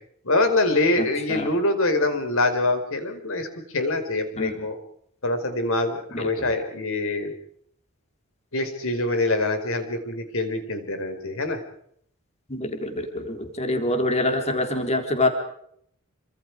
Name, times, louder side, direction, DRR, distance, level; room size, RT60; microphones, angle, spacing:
voice 1, 0.2-3.5 3.7-4.8 5.2-7.3 8.5-11.6, left 2 dB, 65° left, 8 dB, 5.0 m, -24 dB
voice 2, 1.0-1.5 4.4-4.5 6.1-6.5 12.5-15.3, left 1 dB, 30° left, 5 dB, 3.7 m, -26 dB
28.5 x 26.0 x 4.9 m, 0.67 s
head